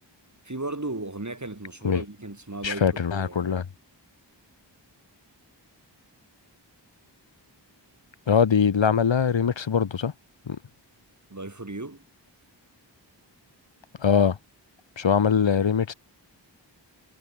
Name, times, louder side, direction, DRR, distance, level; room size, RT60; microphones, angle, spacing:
voice 1, 0.4-3.6 11.3-12.0, right 2 dB, 40° right, 6.2 m, -35 dB
voice 2, 2.6-3.6 8.3-10.1 10.5-10.6 14.0-14.4 15.0-15.9, left 7 dB, 80° left, 1.1 m, -22 dB
wide cardioid pair, 50°, 44 cm